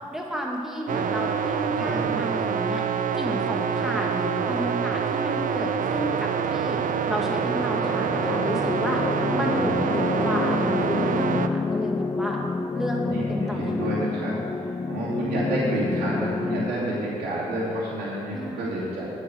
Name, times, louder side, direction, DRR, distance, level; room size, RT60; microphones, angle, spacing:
voice 1, 0.1-2.8 3.1-6.8 7.1-9.0 9.3-12.4 12.7-13.0 13.3-14.1 18.3-19.0, equal, ahead, -1 dB, 2.2 m, -32 dB
sound 1, 0.9-11.5, right 7 dB, 50° right, 0.5 m, -26 dB
voice 2, 1.7-2.3 9.5-9.8 10.1-10.4 12.9-19.1, right 1 dB, 70° right, -8 dB, 2.6 m, -30 dB
sound 2, 7.1-16.7, left 4 dB, 25° left, 0.4 m, -28 dB
8.7 x 7.5 x 6.5 m, 2.5 s
hypercardioid pair, 40°, 17 cm